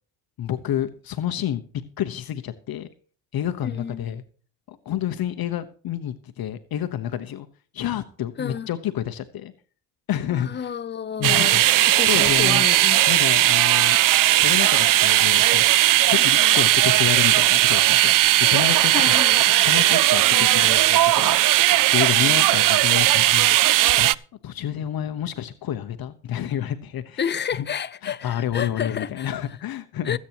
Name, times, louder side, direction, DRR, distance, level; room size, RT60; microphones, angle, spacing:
voice 1, 0.4-1.6 2.0-2.9 3.3-4.2 4.7-7.5 7.7-9.5 10.1-10.7 11.2-12.7 13.1-14.0 14.4-15.7 16.0-24.1 24.4-27.7 28.0-30.2, left 11 dB, 55° left, 1.0 m, -29 dB
voice 2, 3.6-4.2 8.4-8.7 10.3-11.5 11.9-13.1 16.1-16.6 18.9-19.4 20.3-20.7 27.2-29.3 30.1-30.2, left 7 dB, 25° left, 0.7 m, -31 dB
sound 1, 11.2-24.1, right 14 dB, 50° right, 0.5 m, -17 dB
23.0 x 8.5 x 2.9 m
cardioid pair, 105°, 43 cm